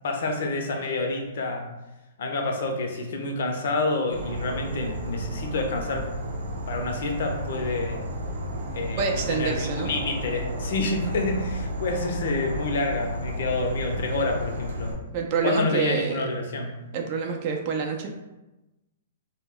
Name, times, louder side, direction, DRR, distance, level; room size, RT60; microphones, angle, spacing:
voice 1, 0.0-1.7 2.2-6.1 6.7-8.1 8.7-15.0 15.4-16.7, left 2 dB, 65° left, 3 dB, 0.5 m, -28 dB
Insect / Frog, 4.1-14.9, equal, 80° right, 0.7 m, -32 dB
voice 2, 9.0-10.0 15.1-16.3 16.9-18.1, right 5 dB, 45° right, 2 dB, 0.5 m, -27 dB
2.1 x 2.0 x 3.7 m, 1.0 s
hypercardioid pair, 130°, 0 cm